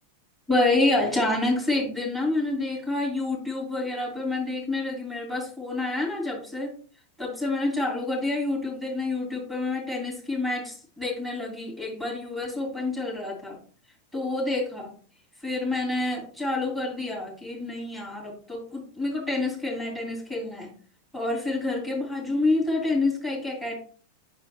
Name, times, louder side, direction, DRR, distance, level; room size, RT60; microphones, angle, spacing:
voice 1, 0.5-6.7 7.2-13.6 14.1-14.9 15.4-20.7 21.1-23.8, left 2 dB, 10° left, -2 dB, 2.9 m, -28 dB
5.9 x 4.4 x 4.3 m, 0.41 s
figure-of-eight pair, 90°, 0 cm